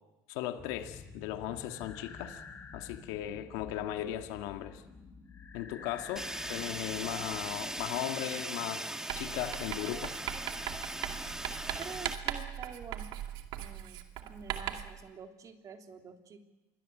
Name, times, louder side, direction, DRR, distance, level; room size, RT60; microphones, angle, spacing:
voice 1, 0.3-2.4 2.7-4.8 5.5-10.1, left 12 dB, 80° left, 6 dB, 1.9 m, -37 dB
sound 1, 0.6-8.0, left 5 dB, 30° left, 4.4 m, -49 dB
Fire, 6.2-12.2, right 1 dB, 5° right, 1.8 m, -39 dB
Writing, 9.1-15.0, right 11 dB, 70° right, 2.4 m, -39 dB
voice 2, 11.8-13.1 13.6-16.4, right 6 dB, 40° right, 4 dB, 3.2 m, -48 dB
27.5 x 22.5 x 7.7 m, 1.1 s
supercardioid pair, 100°, 9 cm